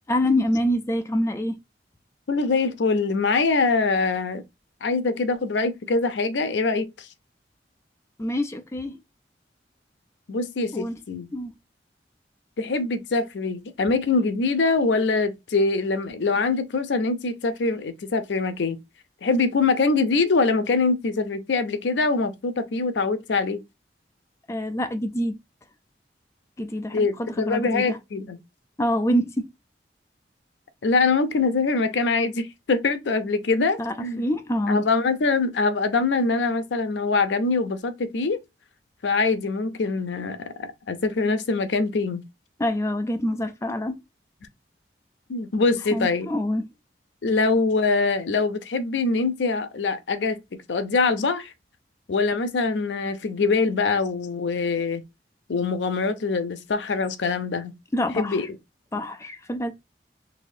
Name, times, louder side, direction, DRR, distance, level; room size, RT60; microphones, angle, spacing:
voice 1, 0.1-1.6 8.2-8.9 10.7-11.0 11.3-11.5 24.5-25.3 26.6-28.0 28.8-29.5 33.8-34.9 42.6-43.9 45.9-46.7 57.9-58.4 58.9-59.7, left 1 dB, 15° left, 0.4 m, -26 dB
voice 2, 2.3-4.4 4.8-7.1 10.3-11.3 12.6-18.8 19.2-23.6 26.9-28.4 30.8-34.2 34.7-38.4 39.0-42.2 45.3-46.3 47.2-50.4 50.7-51.5 52.1-55.0 55.5-57.7 58.2-58.5, left 3 dB, 90° left, 0.5 m, -23 dB
4.1 x 2.5 x 2.6 m
head